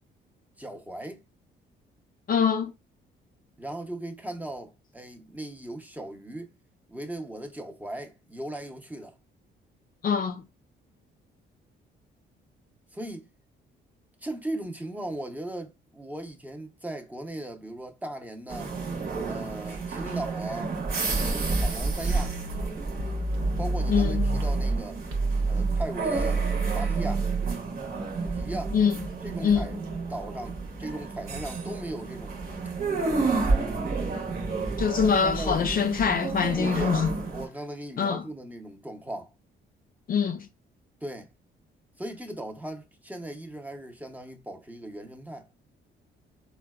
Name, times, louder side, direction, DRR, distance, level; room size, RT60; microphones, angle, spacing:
voice 1, 0.6-1.2 3.6-6.5 6.9-9.2 12.9-13.3 14.2-18.7 19.2-20.7 21.3-22.4 23.6-25.0 25.5-26.4 26.7-27.3 28.2-28.8 29.2-32.4 35.2-35.7 36.6-37.0 37.3-39.3 41.0-41.3 42.0-45.5, right 1 dB, 10° right, 0.7 m, -38 dB
voice 2, 2.3-2.7 10.0-10.4 23.9-24.3 28.7-29.0 29.4-29.7 34.8-37.1 38.0-38.2 40.1-40.5, left 7 dB, 45° left, 0.4 m, -24 dB
sound 1, 18.5-37.5, right 3 dB, 45° right, 0.9 m, -31 dB
sound 2, 22.1-24.8 25.1-27.5, right 3 dB, 80° right, 0.8 m, -28 dB
3.8 x 2.1 x 2.3 m
cardioid pair, 90°, 20 cm